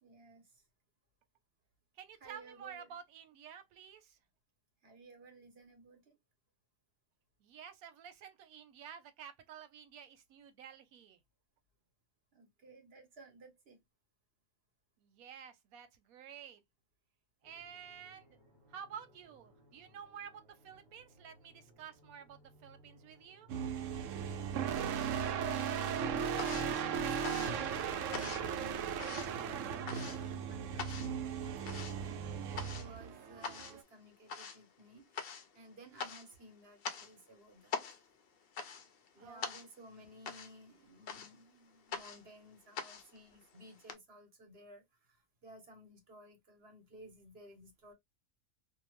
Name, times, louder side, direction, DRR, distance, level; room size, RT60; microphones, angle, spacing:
voice 1, 0.0-0.6 2.2-2.9 4.8-6.2 12.3-13.8 24.5-37.8 39.1-47.9, right 1 dB, 50° right, 1.1 m, -56 dB
voice 2, 1.9-4.2 7.4-11.2 15.0-16.6 17.4-18.4 18.7-23.5 39.2-39.4, right 8 dB, 85° right, 1.1 m, -51 dB
sound 1, 17.4-33.1, right 3 dB, 25° right, 1.1 m, -61 dB
sound 2, 23.5-33.8, right 7 dB, 70° right, 0.9 m, -37 dB
sound 3, 24.6-25.4 25.7-43.9, left 6 dB, 60° left, 0.6 m, -45 dB
2.8 x 2.1 x 3.0 m
omnidirectional pair, 1.5 m